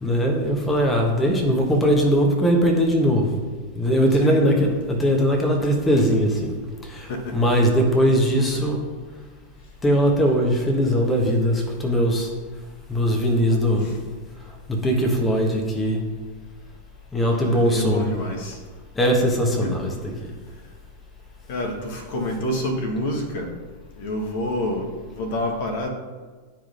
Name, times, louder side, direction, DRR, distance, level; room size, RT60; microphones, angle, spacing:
voice 1, 0.0-3.4 3.7-6.6 6.8-8.8 9.8-12.3 12.9-14.0 14.5-16.0 17.1-18.1 18.9-20.3, equal, 15° left, 1 dB, 1.1 m, -20 dB
voice 2, 17.3-18.6 19.6-19.7 21.5-23.5 24.0-24.9 25.2-25.9, left 1 dB, 50° left, 1 dB, 1.2 m, -27 dB
11.5 x 4.7 x 2.5 m, 1.4 s
figure-of-eight pair, 90°, 0 cm